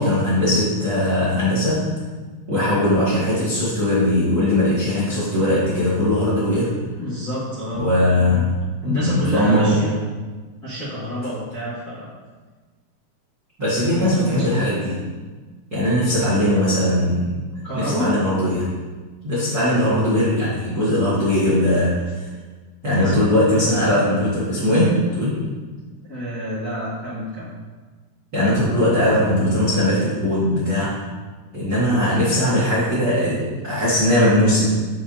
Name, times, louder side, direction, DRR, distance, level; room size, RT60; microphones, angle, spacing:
voice 1, 0.0-1.9 2.5-6.7 7.7-8.5 8.8-9.8 13.6-15.0 15.7-17.3 17.7-18.6 19.2-22.3 22.8-25.4 28.3-31.0 31.5-34.7, left 1 dB, 55° right, -9 dB, 1.0 m, -19 dB
voice 2, 7.0-7.8 8.8-10.0 10.6-12.2 13.8-14.6 17.6-18.1 23.0-23.1 26.0-27.5, equal, 35° left, -12 dB, 1.6 m, -28 dB
8.3 x 7.1 x 2.8 m, 1.4 s
omnidirectional pair, 4.7 m